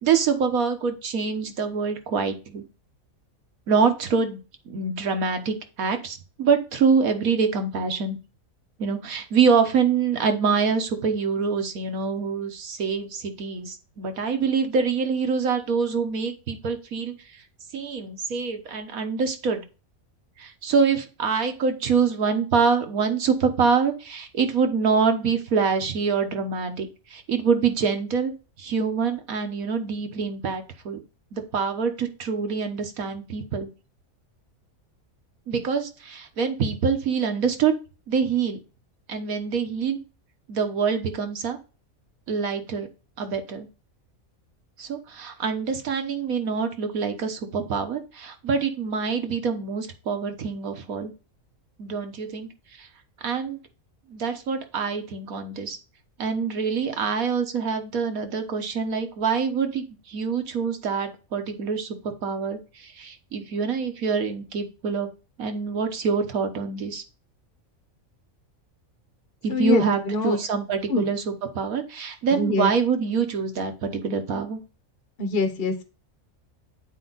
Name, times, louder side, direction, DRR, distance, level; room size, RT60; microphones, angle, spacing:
voice 1, 0.0-2.6 3.7-4.4 4.7-8.2 8.8-17.1 17.7-19.6 20.4-28.3 28.6-31.0 31.3-33.7 35.5-37.7 38.1-38.6 39.1-40.0 40.5-41.6 42.3-42.9 43.2-43.7 44.8-51.1 51.8-52.5 52.8-52.9 53.2-53.6 54.1-55.8 56.2-65.1 65.4-67.0 69.4-74.6, right 5 dB, 85° right, 6 dB, 1.7 m, -25 dB
voice 2, 69.5-70.4 70.9-71.1 72.3-72.7 75.2-75.8, left 3 dB, 45° left, 7 dB, 1.2 m, -24 dB
8.3 x 4.6 x 4.0 m, 0.32 s
omnidirectional pair, 1.4 m